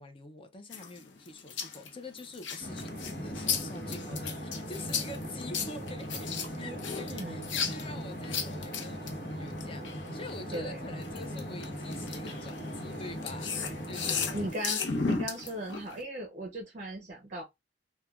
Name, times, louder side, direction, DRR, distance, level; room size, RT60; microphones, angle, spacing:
voice 1, 0.0-6.3 6.6-14.5, left 2 dB, 30° left, 0.5 m, -46 dB
sound 1, 0.7-10.6 11.0-16.0, left 5 dB, 85° left, 0.6 m, -35 dB
sound 2, 2.6-14.5, equal, 60° left, 1.0 m, -39 dB
voice 2, 6.6-7.8 10.5-10.8 13.9-17.4, right 1 dB, 45° right, 0.5 m, -38 dB
3.1 x 2.2 x 2.3 m
head